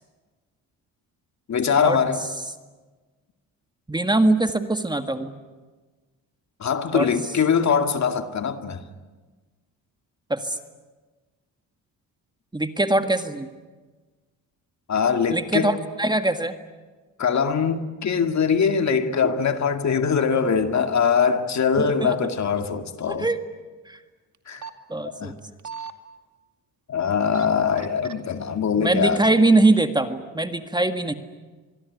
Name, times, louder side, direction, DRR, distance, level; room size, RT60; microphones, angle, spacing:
voice 1, 1.5-2.2 6.6-8.8 14.9-15.7 17.2-23.3 24.5-24.7 25.1-25.3 26.9-29.2, left 6 dB, 50° left, 2.1 m, -22 dB
voice 2, 3.9-5.4 6.9-7.1 10.3-10.6 12.5-13.5 15.3-16.5 21.8-22.2 23.1-23.4 23.9-24.0 24.9-25.3 28.8-31.1, right 2 dB, 10° right, 1.8 m, -22 dB
sound 1, 24.3-24.7 25.4-25.9 27.1-27.5 27.8-28.1 28.9-29.4 29.8-29.9, right 7 dB, 55° right, 2.5 m, -36 dB
25.5 x 22.0 x 9.6 m
cardioid pair, 90°, 36 cm